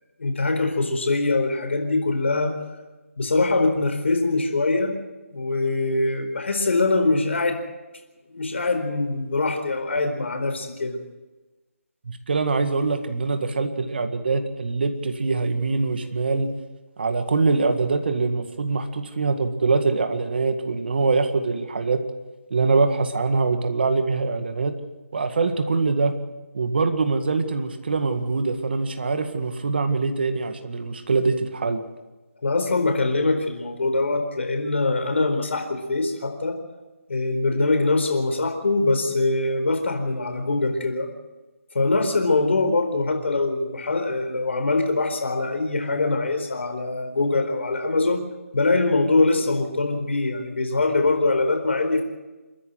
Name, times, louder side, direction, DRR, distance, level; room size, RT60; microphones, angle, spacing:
voice 1, 0.2-2.5 3.2-4.9 5.3-7.6 8.3-11.0 32.4-36.6 37.1-41.1 41.7-48.2 48.5-52.0, left 3 dB, 55° left, 5 dB, 4.3 m, -23 dB
voice 2, 12.1-16.5 17.0-22.0 22.5-24.7 25.1-26.1 26.5-31.8, right 4 dB, 45° right, 7 dB, 1.9 m, -23 dB
29.5 x 11.5 x 8.0 m, 1.2 s
figure-of-eight pair, 170°, 8 cm